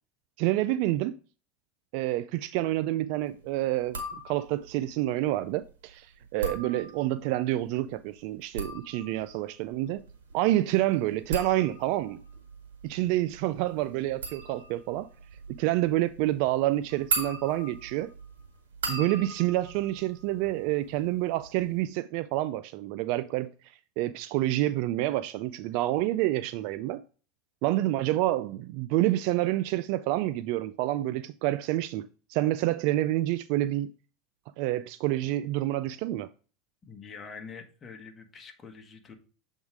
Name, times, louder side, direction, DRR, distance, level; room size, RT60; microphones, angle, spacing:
voice 1, 0.4-1.2 1.9-4.0 4.2-10.0 10.3-12.2 12.8-15.1 15.6-18.1 18.9-23.5 24.0-27.0 27.6-32.0 32.3-33.9 34.6-36.3, right 15 dB, 65° right, 0.3 m, -28 dB
sound 1, 3.8-4.7 6.2-7.3 8.3-21.0 21.3-21.8, right 3 dB, 90° right, 1.8 m, -38 dB
voice 2, 36.8-39.1, left 5 dB, 25° left, 1.4 m, -45 dB
7.2 x 3.6 x 4.7 m
hypercardioid pair, 105°, 0 cm